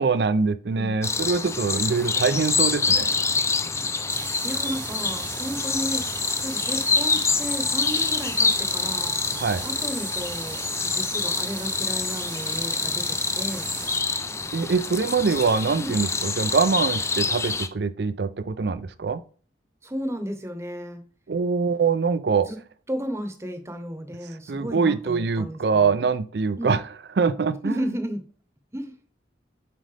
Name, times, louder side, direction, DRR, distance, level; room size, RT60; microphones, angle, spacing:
voice 1, 0.0-3.1 9.4-9.7 14.5-19.2 21.3-22.5 24.5-26.8 27.2-27.9, right 5 dB, 60° right, 14 dB, 0.5 m, -24 dB
sound 1, 1.0-17.7, left 4 dB, 15° left, 0.4 m, -26 dB
sound 2, 4.1-14.0, right 7 dB, 80° right, 1.3 m, -37 dB
voice 2, 4.4-6.2 6.4-9.1 9.6-10.6 10.8-13.7 15.8-16.0 19.8-21.0 22.5-22.6 22.9-26.0 26.6-26.7 27.6-28.2 28.7-29.0, equal, 15° right, 7 dB, 0.9 m, -33 dB
7.5 x 5.2 x 3.3 m, 0.42 s
head